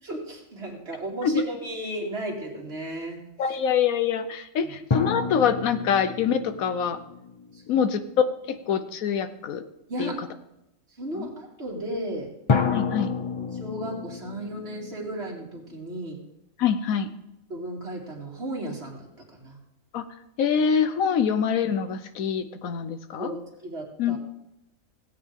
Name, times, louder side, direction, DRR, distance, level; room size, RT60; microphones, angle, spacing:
voice 1, 0.0-3.6 4.6-4.7 7.5-7.9 9.9-10.2 11.0-12.3 13.5-16.2 17.5-19.6 23.2-24.2, right 1 dB, 45° right, -2 dB, 2.6 m, -35 dB
voice 2, 3.4-7.0 7.7-9.6 10.0-10.1 11.1-11.3 12.7-13.1 16.6-17.1 19.9-20.0 20.4-23.3 24.0-24.2, left 7 dB, 80° left, 11 dB, 1.2 m, -25 dB
sound 1, 4.9-8.3 12.5-15.8, left 5 dB, 50° left, 0.3 m, -30 dB
17.0 x 8.5 x 3.7 m, 0.87 s
omnidirectional pair, 1.5 m